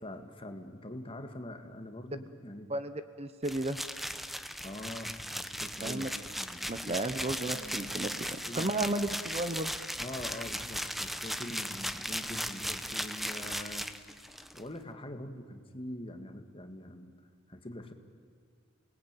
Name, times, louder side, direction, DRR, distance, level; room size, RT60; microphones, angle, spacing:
voice 1, 0.0-2.7 4.6-7.0 7.5-8.0 8.5-8.8 10.0-13.9 14.5-17.1 17.5-17.9, left 1 dB, 25° left, 6 dB, 1.9 m, -44 dB
voice 2, 2.7-3.8 5.8-6.1 6.7-9.7, right 2 dB, 30° right, 11 dB, 0.9 m, -33 dB
sound 1, 3.4-14.6, equal, ahead, 0.8 m, -37 dB
28.5 x 19.5 x 9.1 m, 2.2 s
head